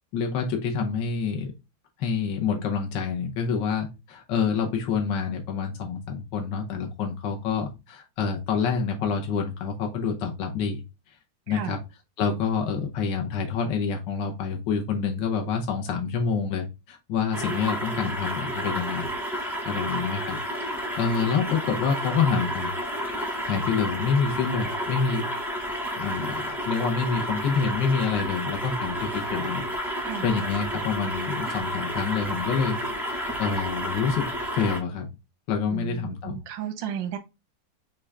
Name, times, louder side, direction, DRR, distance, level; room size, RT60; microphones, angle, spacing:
voice 1, 0.1-1.5 2.0-10.8 11.1-11.2 11.5-11.8 12.2-22.7 23.4-25.3 25.9-29.7 29.9-32.8 33.1-35.1 35.5-36.4, left 5 dB, 80° left, 1.5 m, -27 dB
sound 1, 17.3-34.8, equal, ahead, 0.5 m, -31 dB
voice 2, 35.7-37.2, right 9 dB, 90° right, 1.5 m, -33 dB
6.0 x 2.4 x 3.2 m
omnidirectional pair, 2.0 m